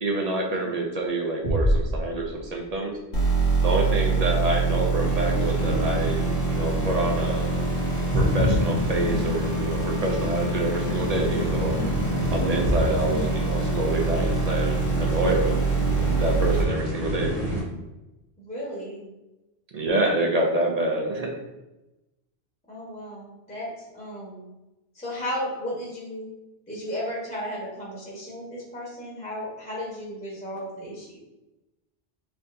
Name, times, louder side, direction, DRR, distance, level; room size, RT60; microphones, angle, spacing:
voice 1, 0.0-3.0 3.6-7.5 8.1-11.7 12.3-15.6 15.9-17.3 19.7-21.3, right 2 dB, 50° right, 1 dB, 0.5 m, -27 dB
sound 1, 1.4-3.2, equal, 25° right, 1.0 m, -26 dB
sound 2, 3.1-16.6, right 3 dB, 85° left, 1.2 m, -25 dB
sound 3, 5.0-17.6, equal, 85° right, 1.9 m, -29 dB
voice 2, 18.4-19.1 22.7-24.4 24.9-26.3 26.7-31.1, equal, 5° left, -6 dB, 0.9 m, -34 dB
4.3 x 2.8 x 2.5 m, 1.0 s
omnidirectional pair, 1.1 m